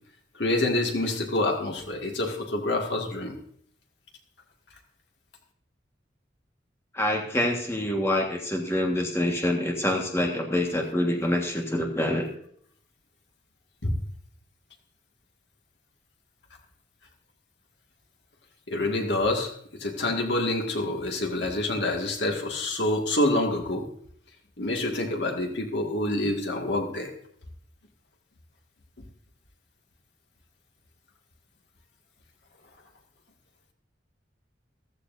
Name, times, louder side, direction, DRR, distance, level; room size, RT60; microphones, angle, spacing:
voice 1, 0.4-3.4 13.8-13.9 18.7-19.5 19.8-23.9 24.6-27.1, left 1 dB, 70° left, 2 dB, 1.9 m, -27 dB
voice 2, 6.9-12.3, left 1 dB, 15° left, 1 dB, 1.5 m, -26 dB
14.5 x 14.5 x 2.6 m, 0.65 s
head